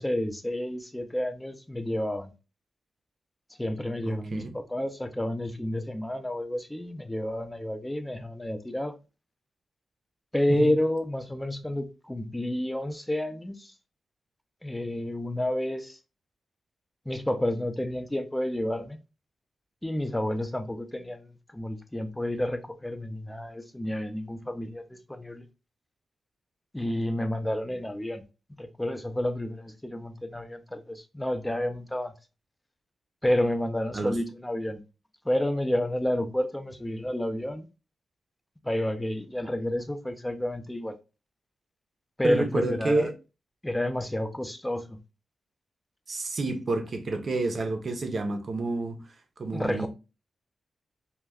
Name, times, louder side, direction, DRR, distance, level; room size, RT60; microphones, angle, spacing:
voice 1, 0.0-2.3 3.6-8.9 10.3-13.7 14.6-16.0 17.1-19.0 19.8-25.5 26.7-28.2 28.6-32.1 33.2-34.8 35.2-37.7 38.6-41.0 42.2-43.1 43.6-45.0 49.5-49.9, left 1 dB, 10° left, 0.5 m, -30 dB
voice 2, 4.1-4.5 10.5-10.7 33.9-34.2 42.2-43.1 46.1-49.0 49.4-49.9, right 2 dB, 55° right, 0.6 m, -29 dB
2.3 x 2.2 x 3.4 m
cardioid pair, 75°, 0 cm